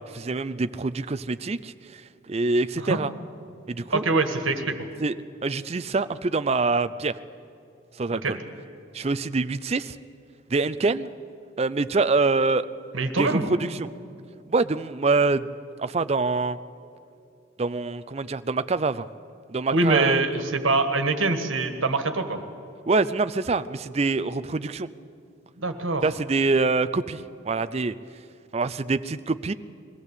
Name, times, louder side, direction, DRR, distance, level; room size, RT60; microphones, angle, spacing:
voice 1, 0.1-1.7 2.3-3.1 3.7-4.0 5.0-5.1 5.4-7.2 8.0-8.4 8.9-10.0 10.5-11.1 11.6-12.7 13.1-13.9 14.5-15.5 15.8-16.6 17.6-19.1 19.5-20.2 22.9-24.9 26.0-27.9 28.5-29.5, right 3 dB, 30° right, 13 dB, 0.4 m, -25 dB
voice 2, 3.9-4.8 8.1-8.4 12.9-13.4 19.7-22.4 25.6-26.0, right 3 dB, 85° right, 7 dB, 1.6 m, -24 dB
21.5 x 15.0 x 8.2 m, 2.6 s
head